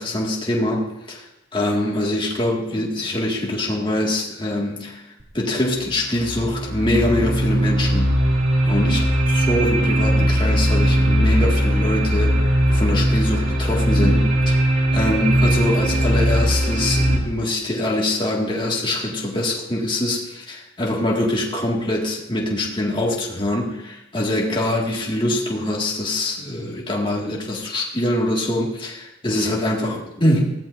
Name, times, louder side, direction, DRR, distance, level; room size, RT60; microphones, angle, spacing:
voice 1, 0.0-5.1 5.3-8.2 8.6-12.4 12.7-14.6 14.9-30.5, left 1 dB, 25° left, -3 dB, 1.9 m, -23 dB
sound 1, 5.2-5.3 5.8-17.2, equal, 80° right, 2.7 m, -19 dB
20.0 x 15.0 x 2.6 m, 0.90 s
head